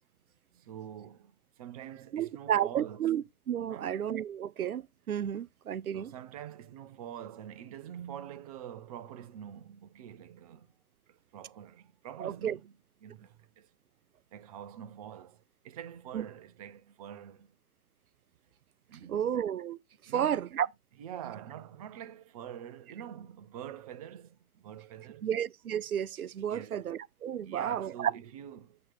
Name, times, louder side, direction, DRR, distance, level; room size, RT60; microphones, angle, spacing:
voice 1, 0.5-3.1 3.7-4.0 5.9-10.7 11.1-13.7 14.3-17.6 18.9-19.3 20.1-20.4 21.0-25.3 26.5-26.9 27.4-28.8, right 10 dB, 25° right, 0.6 m, -46 dB
voice 2, 2.1-6.1 12.2-12.6 16.1-16.2 19.1-20.7 25.2-28.1, right 9 dB, 80° right, 0.5 m, -32 dB
8.5 x 2.9 x 6.2 m
figure-of-eight pair, 120°, 43 cm